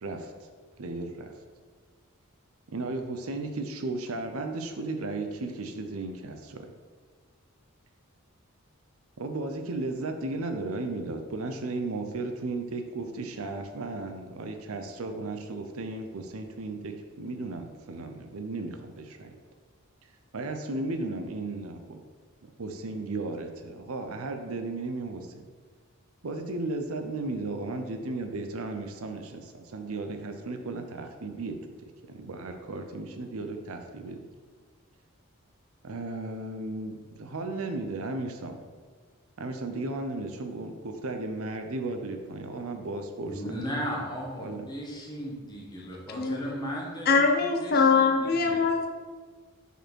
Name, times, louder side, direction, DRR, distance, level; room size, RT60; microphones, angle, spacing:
voice 1, 0.0-0.5 0.8-1.3 2.7-6.7 9.2-19.4 20.3-22.0 22.6-25.3 26.2-34.3 35.8-38.6 39.4-43.8 44.4-44.7, right 2 dB, 75° right, 6 dB, 0.6 m, -35 dB
voice 2, 43.2-47.3 47.6-48.6, equal, 20° left, -3 dB, 1.2 m, -36 dB
voice 3, 46.1-46.6 47.1-48.9, left 4 dB, 45° left, 2 dB, 0.5 m, -23 dB
5.4 x 4.3 x 4.5 m, 1.5 s
head